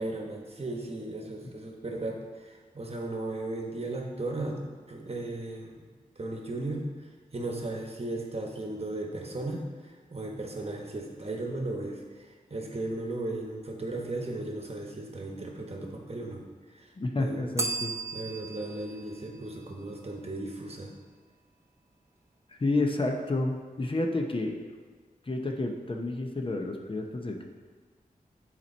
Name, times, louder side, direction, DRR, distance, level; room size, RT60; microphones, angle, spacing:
voice 1, 0.0-5.8 6.2-6.9 7.3-16.9 17.2-17.5 18.1-20.9, right 2 dB, 40° right, 0 dB, 1.1 m, -36 dB
voice 2, 17.0-17.9 22.5-24.6 25.3-27.4, left 2 dB, 35° left, 3 dB, 0.7 m, -30 dB
Bell, 17.6-20.4, right 3 dB, 20° right, 0.6 m, -37 dB
7.0 x 4.3 x 4.3 m, 1.5 s
wide cardioid pair, 65°, 15 cm